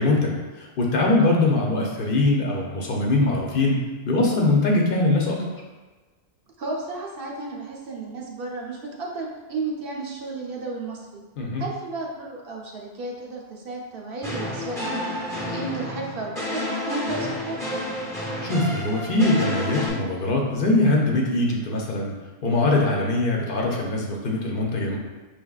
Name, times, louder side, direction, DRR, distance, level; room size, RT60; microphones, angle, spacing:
voice 1, 0.0-5.4 11.4-11.6 18.4-22.2 22.4-25.0, left 2 dB, 60° left, -1 dB, 0.8 m, -22 dB
voice 2, 6.6-11.2 11.6-17.6, right 3 dB, 60° right, -1 dB, 0.8 m, -33 dB
sound 1, 14.2-19.9, left 1 dB, 5° left, 0.7 m, -30 dB
4.8 x 3.2 x 2.3 m, 1.3 s
omnidirectional pair, 1.1 m